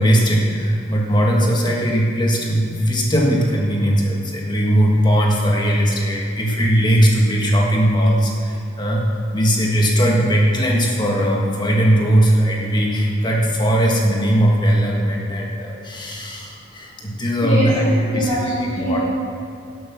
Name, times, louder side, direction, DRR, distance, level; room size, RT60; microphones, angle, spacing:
voice 1, 0.0-9.0 9.3-18.3 18.8-19.0, equal, 25° left, -1 dB, 1.6 m, -18 dB
voice 2, 17.4-19.0, equal, 40° left, -11 dB, 3.2 m, -22 dB
12.0 x 8.0 x 6.0 m, 2.6 s
head